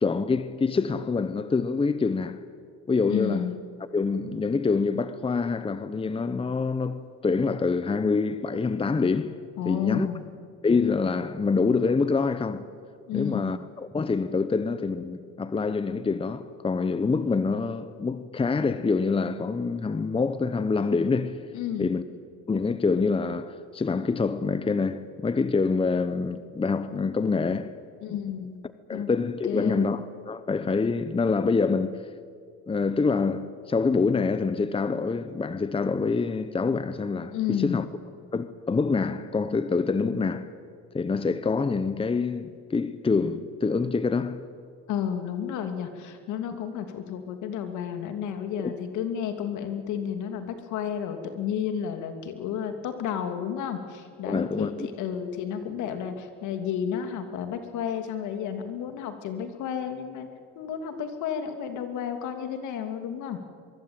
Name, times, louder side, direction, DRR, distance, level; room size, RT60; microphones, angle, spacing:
voice 1, 0.0-2.4 2.9-3.5 3.9-9.4 9.7-10.1 10.6-12.7 13.1-21.4 21.8-22.0 22.5-27.7 28.9-32.0 32.7-37.9 38.3-40.5 40.9-44.4 48.6-48.7 54.3-54.9, left 4 dB, 15° left, 1.0 m, -26 dB
voice 2, 3.1-3.5 9.6-10.3 13.1-13.5 21.5-21.9 28.0-28.6 28.9-29.1 29.4-29.9 37.3-37.8 44.9-60.3 60.5-63.4, left 8 dB, 70° left, 2.9 m, -31 dB
23.5 x 22.5 x 9.0 m
supercardioid pair, 90°, 31 cm